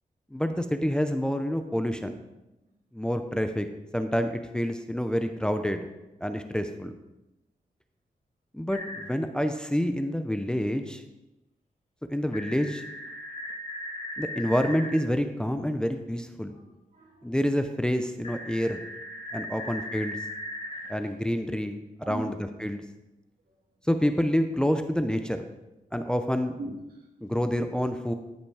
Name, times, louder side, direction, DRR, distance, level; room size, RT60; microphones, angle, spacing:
voice 1, 0.3-2.2 2.9-3.7 3.9-5.9 6.2-7.0 8.5-11.0 12.1-12.8 14.2-16.5 17.2-18.8 19.3-20.2 20.9-21.8 22.1-22.3 22.6-22.8 23.9-25.4 25.9-26.6 27.2-28.1, equal, 5° left, 7 dB, 0.6 m, -27 dB
sound 1, 8.7-9.0 12.3-15.0 18.2-20.9, left 1 dB, 40° left, 1.6 m, -38 dB
voice 2, 16.5-17.4 19.5-19.7 20.6-21.2 22.0-22.4 23.4-23.6 26.6-27.1, right 2 dB, 80° right, -1 dB, 2.7 m, -42 dB
13.0 x 5.9 x 4.8 m, 0.97 s
wide cardioid pair, 155°, 15 cm